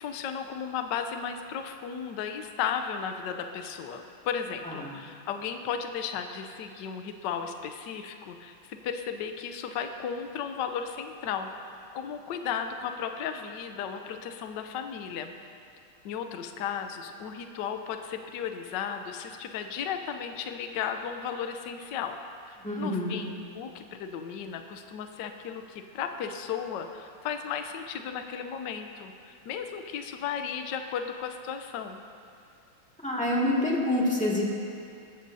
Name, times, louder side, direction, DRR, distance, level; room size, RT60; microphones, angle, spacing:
voice 1, 0.0-15.3 16.0-22.2 22.5-32.0, left 7 dB, 65° left, 6 dB, 1.3 m, -35 dB
voice 2, 22.6-23.3 33.0-34.4, left 1 dB, 5° left, -5 dB, 1.9 m, -27 dB
19.5 x 14.5 x 2.7 m, 2.6 s
omnidirectional pair, 2.3 m